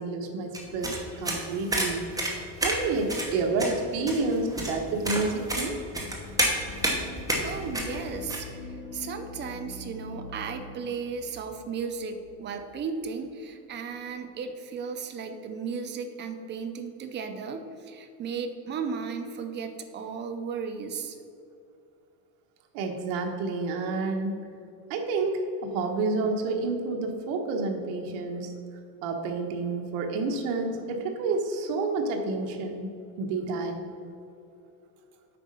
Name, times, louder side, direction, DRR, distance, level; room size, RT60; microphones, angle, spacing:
voice 1, 0.0-2.2 2.6-5.8 22.7-24.3 24.9-28.5 29.0-32.9 33.2-33.8, right 3 dB, 70° right, 3 dB, 1.3 m, -29 dB
sound 1, 0.5-8.4, right 1 dB, 5° right, 0.9 m, -30 dB
sound 2, 5.8-12.9, left 3 dB, 30° left, 1.6 m, -44 dB
voice 2, 7.4-21.2, right 5 dB, 25° right, 7 dB, 0.4 m, -35 dB
8.4 x 5.1 x 5.4 m, 2.6 s
cardioid pair, 155°, 49 cm